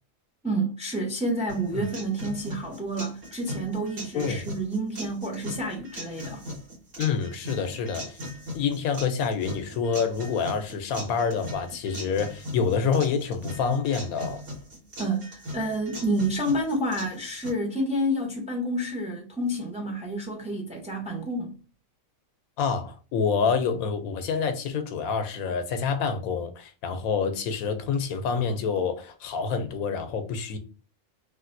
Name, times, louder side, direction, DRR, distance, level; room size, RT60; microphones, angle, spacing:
voice 1, 0.4-6.4 15.0-21.6, right 1 dB, 5° right, 0.5 m, -29 dB
sound 1, 1.5-17.5, left 1 dB, 65° right, 1.9 m, -39 dB
voice 2, 4.1-4.5 7.0-8.2 8.5-14.4 22.6-30.6, left 6 dB, 85° left, 1.1 m, -27 dB
3.3 x 2.6 x 2.5 m
omnidirectional pair, 1.4 m